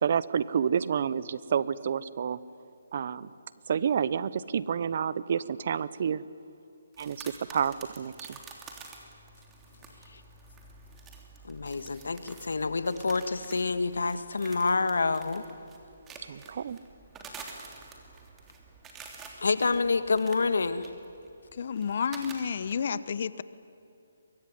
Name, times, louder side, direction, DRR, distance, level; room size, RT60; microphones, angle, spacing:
voice 1, 0.0-2.4 2.9-3.3 3.7-6.2 7.0-8.4 16.3-16.8, right 7 dB, 50° right, 18 dB, 0.9 m, -29 dB
sound 1, 6.9-22.7, right 4 dB, 15° right, 3.1 m, -49 dB
voice 2, 11.4-15.4 19.4-20.9, left 4 dB, 80° left, 12 dB, 1.7 m, -28 dB
voice 3, 21.6-23.4, left 6 dB, 50° left, 16 dB, 1.0 m, -31 dB
23.5 x 23.0 x 9.6 m, 2.7 s
hypercardioid pair, 155°, 0 cm